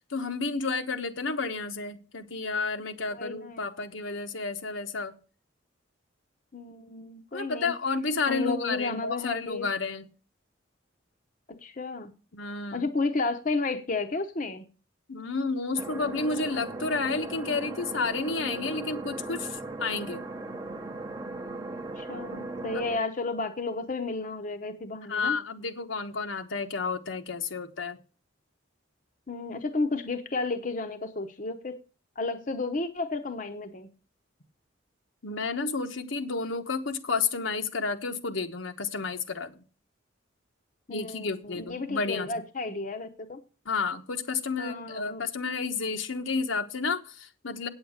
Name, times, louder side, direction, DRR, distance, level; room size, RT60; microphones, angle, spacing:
voice 1, 0.1-5.1 7.3-10.1 12.3-12.9 15.1-20.2 25.1-28.0 35.2-39.5 40.9-42.3 43.7-47.7, left 4 dB, 75° left, 6 dB, 1.2 m, -31 dB
voice 2, 3.1-3.8 6.5-7.7 8.3-9.7 11.5-12.1 12.7-14.6 22.0-25.4 29.3-31.8 32.2-33.9 40.9-43.4 44.6-45.3, left 3 dB, 40° left, 6 dB, 0.8 m, -32 dB
sound 1, 15.8-23.0, right 2 dB, 20° right, 0.7 m, -38 dB
9.1 x 7.9 x 6.4 m, 0.36 s
head